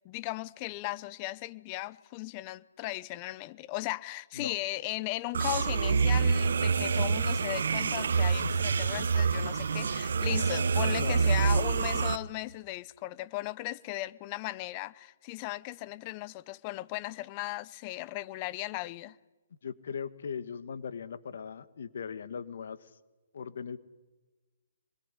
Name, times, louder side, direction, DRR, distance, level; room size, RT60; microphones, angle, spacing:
voice 1, 0.0-19.2, left 18 dB, 30° left, 0.9 m, -37 dB
sound 1, 5.3-12.2, right 5 dB, 70° right, 1.1 m, -27 dB
voice 2, 11.0-12.2 19.6-22.9 23.3-23.8, left 6 dB, 65° left, 1.7 m, -39 dB
26.0 x 21.5 x 10.0 m
hypercardioid pair, 140°, 0 cm